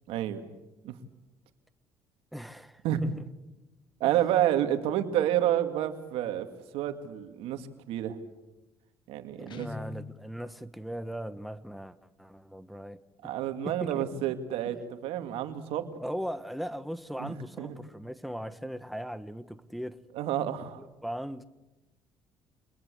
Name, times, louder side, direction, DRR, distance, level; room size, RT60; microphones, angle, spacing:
voice 1, 0.1-0.4 0.8-1.0 2.8-3.0 4.0-6.5 6.7-8.2 9.1-9.7 13.2-15.9 17.2-17.8 20.2-20.8, right 11 dB, 80° right, 2.3 m, -29 dB
voice 2, 2.3-3.2 9.4-13.3 13.6-14.1 14.7-14.8 16.0-20.0 20.8-21.4, equal, ahead, 1.3 m, -39 dB
Guitar, 9.5-10.3, left 4 dB, 55° left, 1.7 m, -42 dB
26.5 x 20.5 x 7.9 m
supercardioid pair, 85°, 10 cm